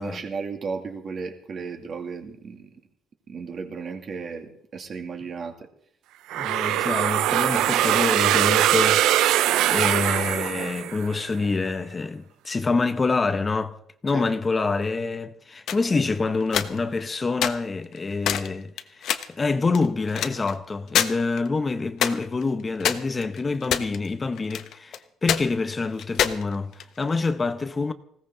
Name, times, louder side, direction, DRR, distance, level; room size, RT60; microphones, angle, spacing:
voice 1, 0.0-2.7 3.3-5.7 14.1-14.2, right 5 dB, 40° right, 2.5 m, -34 dB
sound 1, 6.3-11.2, right 13 dB, 80° right, 0.6 m, -22 dB
voice 2, 6.4-13.8 14.0-27.9, left 3 dB, 20° left, 0.8 m, -26 dB
sound 2, 15.7-15.9 16.4-17.1 17.4-17.5 17.9-18.0 18.2-18.5 18.8-19.3 19.7-20.5 20.9-21.1 21.4-21.5 22.0-22.4 22.8-24.1 24.4-25.0 25.3-25.4 26.0-27.1, left 10 dB, 65° left, 1.1 m, -25 dB
20.0 x 17.0 x 3.9 m
cardioid pair, 140°, 0 cm